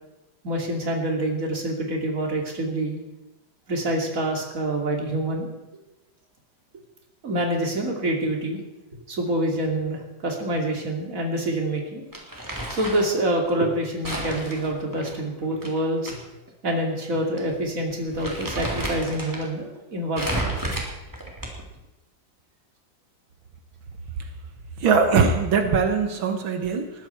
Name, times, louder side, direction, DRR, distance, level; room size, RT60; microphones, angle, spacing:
voice 1, 0.4-3.0 3.7-5.5 7.2-8.6 9.1-12.0 12.7-16.2 16.6-20.5, right 1 dB, 45° right, 1 dB, 3.1 m, -26 dB
Crumpling crinkling, 12.1-13.1 14.0-16.1 16.5-16.6 17.4-17.6 17.9-19.5 20.2-21.8, right 1 dB, 10° right, 3.1 m, -31 dB
voice 2, 24.8-26.9, right 5 dB, 85° right, 5 dB, 2.1 m, -21 dB
20.5 x 15.0 x 4.5 m, 0.99 s
omnidirectional pair, 2.1 m